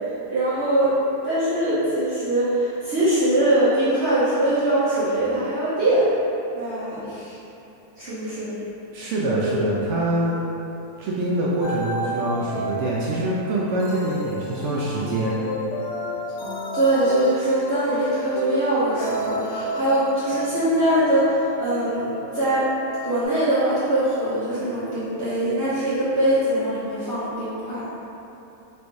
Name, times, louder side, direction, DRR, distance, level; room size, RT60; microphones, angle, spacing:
voice 1, 0.3-1.0 1.2-6.1 6.5-7.4 7.9-8.5 9.3-9.6 16.7-22.7 23.0-27.9, right 1 dB, 50° right, -14 dB, 1.0 m, -22 dB
voice 2, 8.9-10.4 11.0-15.4, right 1 dB, 75° right, -6 dB, 0.6 m, -25 dB
sound 1, 11.6-23.2, equal, 70° left, 0.7 m, -31 dB
3.3 x 2.6 x 4.5 m, 3.0 s
omnidirectional pair, 1.7 m